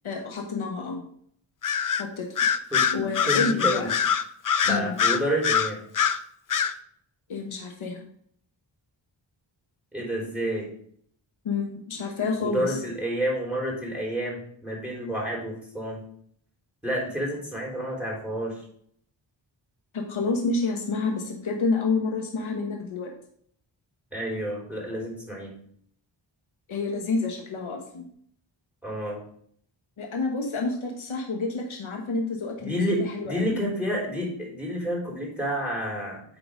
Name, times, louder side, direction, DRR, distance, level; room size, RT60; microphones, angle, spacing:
voice 1, 0.0-1.0 2.0-2.2 2.9-3.9 4.7-4.9 7.3-8.0 10.2-10.3 11.4-12.8 19.9-23.1 26.7-28.1 30.0-33.5, left 3 dB, 85° left, 2 dB, 1.2 m, -29 dB
Bird vocalization bird call bird song, 1.6-2.0 2.4-6.2 6.5-6.7, left 7 dB, 45° left, 0.6 m, -23 dB
voice 2, 3.3-3.9 4.6-5.8 9.9-10.7 12.4-16.0 16.8-18.6 24.1-25.5 28.8-29.2 32.6-36.2, equal, 5° right, -2 dB, 3.5 m, -29 dB
8.7 x 3.9 x 5.0 m, 0.64 s
wide cardioid pair, 70°, 47 cm